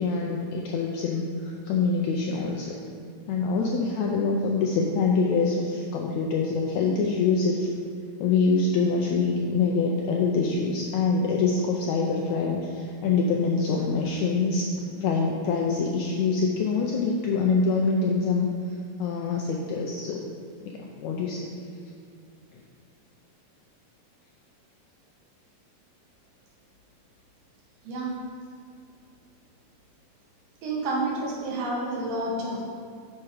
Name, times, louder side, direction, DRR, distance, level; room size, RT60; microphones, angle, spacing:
voice 1, 0.0-2.8 3.3-7.7 8.2-18.5 19.0-20.2 20.6-21.5, left 4 dB, 80° left, -1 dB, 1.6 m, -25 dB
voice 2, 30.6-32.6, right 2 dB, 85° right, -3 dB, 3.1 m, -29 dB
7.7 x 5.9 x 4.8 m, 2.3 s
omnidirectional pair, 3.9 m